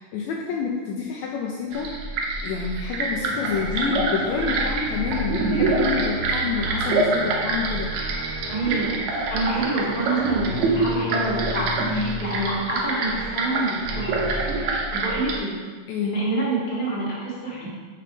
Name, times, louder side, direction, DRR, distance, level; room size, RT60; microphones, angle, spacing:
voice 1, 0.0-2.1 2.4-7.9 15.9-16.1, left 6 dB, 75° left, -1 dB, 1.8 m, -28 dB
sound 1, 1.7-15.4, right 3 dB, 75° right, 2.0 m, -26 dB
sound 2, 3.1-14.7, right 1 dB, 30° right, 2.0 m, -36 dB
sound 3, 3.5-9.3, right 1 dB, 45° right, 1.9 m, -41 dB
voice 2, 8.5-9.0 9.3-14.1 14.6-15.7 16.0-17.7, right 2 dB, 20° left, -7 dB, 1.5 m, -27 dB
6.8 x 4.4 x 5.0 m, 1.5 s
omnidirectional pair, 3.5 m